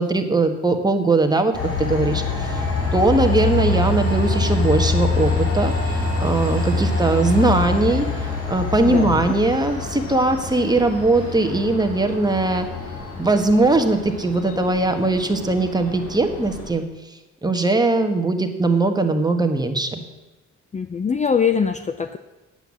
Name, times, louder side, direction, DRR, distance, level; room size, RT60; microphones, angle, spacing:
voice 1, 0.0-1.5 1.8-2.6 2.9-8.1 8.5-12.7 13.2-16.8 17.4-20.0, right 2 dB, 15° right, 5 dB, 1.3 m, -20 dB
Train, 1.5-16.7, left 3 dB, 45° left, 4.5 m, -25 dB
voice 2, 8.8-9.3 20.7-22.2, left 6 dB, 25° left, 9 dB, 0.5 m, -22 dB
9.0 x 8.0 x 7.4 m, 1.1 s
cardioid pair, 90°, 30 cm